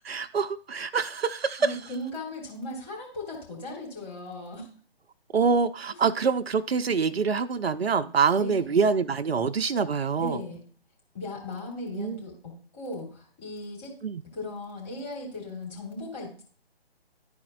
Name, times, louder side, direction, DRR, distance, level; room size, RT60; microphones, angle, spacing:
voice 1, 0.0-1.7 5.3-10.4 12.0-12.2 14.0-14.2, right 5 dB, 75° right, 8 dB, 0.6 m, -25 dB
voice 2, 1.6-4.7 8.3-8.7 10.2-10.6 11.1-13.9 14.3-16.4, left 2 dB, 15° left, -4 dB, 3.0 m, -37 dB
12.5 x 4.3 x 2.4 m, 0.43 s
figure-of-eight pair, 145°, 31 cm